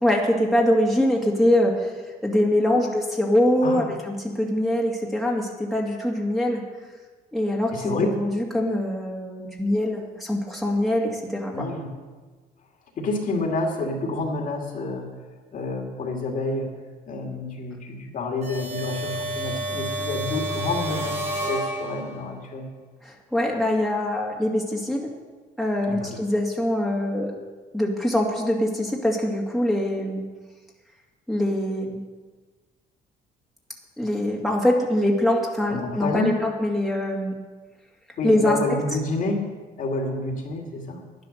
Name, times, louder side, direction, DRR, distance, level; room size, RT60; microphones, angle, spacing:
voice 1, 0.0-1.9 2.2-6.6 7.3-11.5 23.0-25.0 25.6-27.3 27.7-30.2 31.3-32.0 34.0-37.3 38.2-38.6, left 1 dB, ahead, -2 dB, 2.2 m, -23 dB
voice 2, 7.7-8.1 11.5-11.9 13.0-15.1 15.5-16.7 17.1-22.7 25.9-26.2 35.7-36.4 38.2-39.5 39.8-41.0, left 2 dB, 50° left, 1 dB, 2.5 m, -28 dB
sound 1, 18.4-22.3, right 1 dB, 40° right, 4.0 m, -30 dB
10.5 x 10.5 x 6.7 m, 1.3 s
cardioid pair, 110°, 17 cm